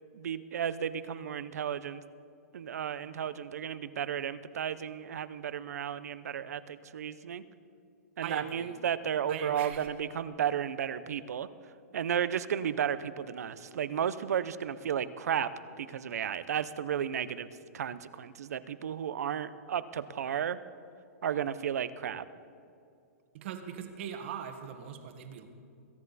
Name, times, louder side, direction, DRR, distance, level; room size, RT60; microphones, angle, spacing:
voice 1, 0.1-2.0 2.5-7.4 8.2-11.5 11.9-15.5 15.8-20.6 21.2-22.3, right 8 dB, 85° right, 15 dB, 0.7 m, -33 dB
voice 2, 8.2-8.7 9.3-9.9 23.3-25.5, right 8 dB, 50° right, 7 dB, 1.5 m, -40 dB
22.0 x 10.0 x 4.1 m, 2.4 s
hypercardioid pair, 160°, 8 cm